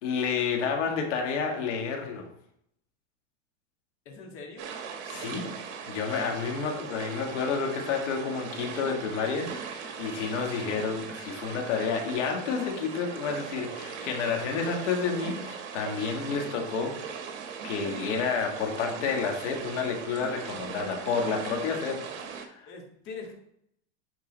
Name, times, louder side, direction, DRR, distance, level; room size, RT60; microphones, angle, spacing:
voice 1, 0.0-2.3 5.1-17.0 17.6-22.7, left 5 dB, 80° left, 2 dB, 1.8 m, -30 dB
voice 2, 4.0-4.7 22.7-23.3, left 4 dB, 35° left, 0 dB, 1.8 m, -42 dB
sound 1, 4.6-22.5, right 6 dB, 65° right, 1.5 m, -39 dB
9.6 x 3.9 x 3.9 m, 0.72 s
supercardioid pair, 145°, 36 cm